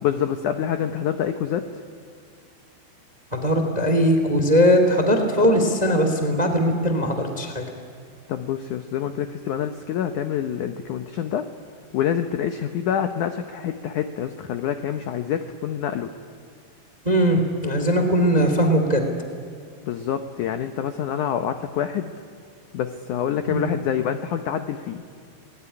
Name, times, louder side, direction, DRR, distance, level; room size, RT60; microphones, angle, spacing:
voice 1, 0.0-1.6 8.3-11.5 11.9-16.1 19.8-22.1 22.7-25.0, left 9 dB, 90° left, 8 dB, 1.7 m, -26 dB
voice 2, 3.3-7.6 17.0-19.1 23.5-23.7, equal, 15° right, 6 dB, 1.7 m, -20 dB
28.5 x 19.5 x 9.8 m, 2.4 s
omnidirectional pair, 4.9 m